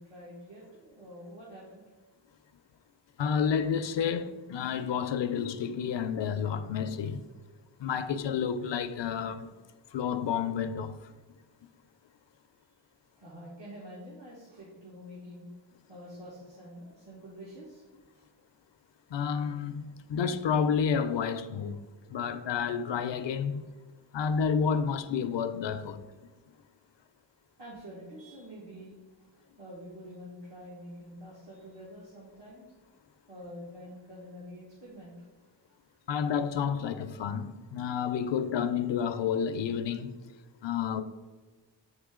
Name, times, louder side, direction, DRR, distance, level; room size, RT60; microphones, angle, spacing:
voice 1, 0.0-1.8 12.6-12.7 13.2-15.5 15.9-17.9 18.1-18.3 27.6-32.7 33.3-35.5, equal, 75° right, 1.7 m, -47 dB
voice 2, 3.2-7.2 7.8-9.5 9.9-11.1 19.1-21.8 22.1-23.7 24.1-26.0 36.1-40.1 40.6-41.0, left 7 dB, 75° left, 0.5 m, -30 dB
8.6 x 3.3 x 3.6 m
wide cardioid pair, 90°, 44 cm